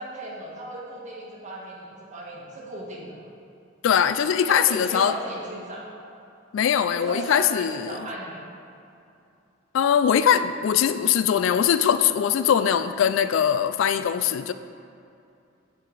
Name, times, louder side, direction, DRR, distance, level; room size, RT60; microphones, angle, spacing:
voice 1, 0.0-3.2 4.5-5.9 6.9-8.4, right 1 dB, 40° right, -4 dB, 1.4 m, -36 dB
voice 2, 3.8-5.1 6.5-8.0 9.7-14.5, left 8 dB, 75° left, 13 dB, 0.3 m, -21 dB
7.7 x 4.7 x 5.0 m, 2.5 s
head